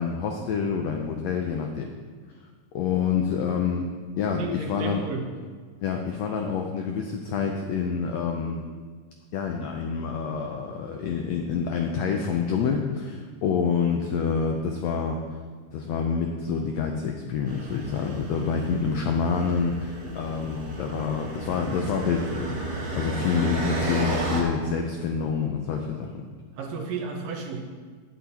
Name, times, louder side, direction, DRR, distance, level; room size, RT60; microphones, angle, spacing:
voice 1, 0.0-1.9 2.7-3.9 4.2-5.0 5.8-8.6 9.3-15.4 15.7-22.6 23.0-26.2, left 6 dB, 85° left, 3 dB, 1.5 m, -27 dB
voice 2, 4.4-5.2 26.6-27.6, right 4 dB, 80° right, 2 dB, 2.7 m, -33 dB
sound 1, 17.5-24.4, right 1 dB, 50° right, 1.2 m, -33 dB
9.9 x 8.6 x 4.2 m, 1.5 s
omnidirectional pair, 3.8 m